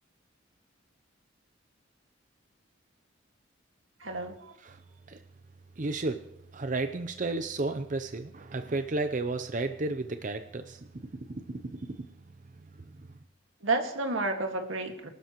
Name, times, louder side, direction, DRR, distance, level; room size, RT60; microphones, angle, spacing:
voice 1, 4.0-4.6 13.6-15.1, right 3 dB, 85° right, 4 dB, 1.9 m, -31 dB
voice 2, 5.8-6.3 6.5-12.1 12.6-13.2, right 2 dB, 40° right, 8 dB, 0.6 m, -33 dB
24.0 x 12.0 x 3.1 m, 0.78 s
head